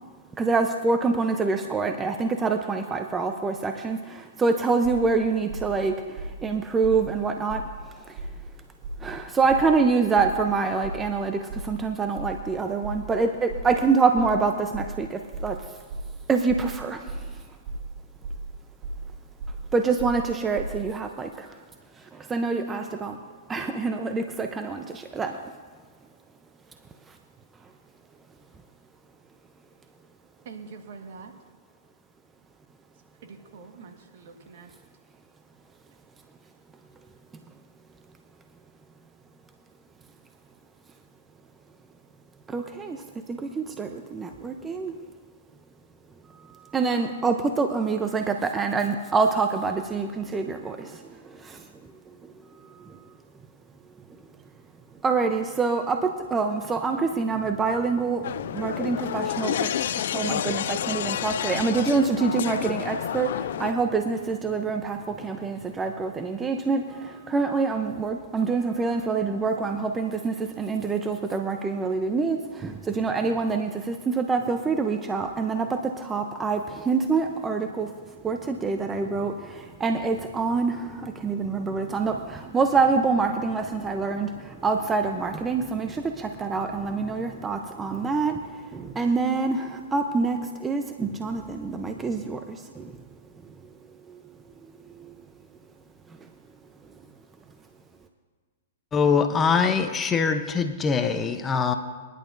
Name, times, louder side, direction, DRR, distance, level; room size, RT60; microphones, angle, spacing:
voice 1, 0.4-7.7 8.0-8.2 9.0-15.6 16.3-17.3 19.7-21.6 22.1-23.2 23.5-25.4 42.5-45.0 46.7-51.7 52.8-53.0 55.0-77.9 78.2-92.9 94.1-94.2 95.0-95.1, right 4 dB, 15° right, 6 dB, 0.7 m, -26 dB
sound 1, 4.8-5.1 5.5-5.8 6.1-6.5 6.8-7.1 7.5-7.8 8.2-8.5 8.8-9.1 9.5-9.8 10.1-10.5 10.8-11.1 11.5-11.8 12.1-12.5 12.8-13.1 13.5-13.8 14.1-14.4 14.7-15.0 15.3-15.6 15.9-16.2 16.5-16.7 17.1-17.3 17.6-17.9 18.2-18.5 18.8-19.1 19.4-19.6 20.0-20.2 20.5-20.8, right 2 dB, 45° right, 3.5 m, -35 dB
voice 2, 30.4-31.3 33.2-34.7, right 5 dB, 60° right, 5 dB, 1.5 m, -44 dB
sound 2, 58.2-63.7, left 10 dB, 65° left, 0.4 m, -29 dB
voice 3, 98.9-101.7, left 5 dB, 20° left, 8 dB, 0.7 m, -23 dB
22.5 x 11.0 x 2.6 m, 1.4 s
hypercardioid pair, 120°, 0 cm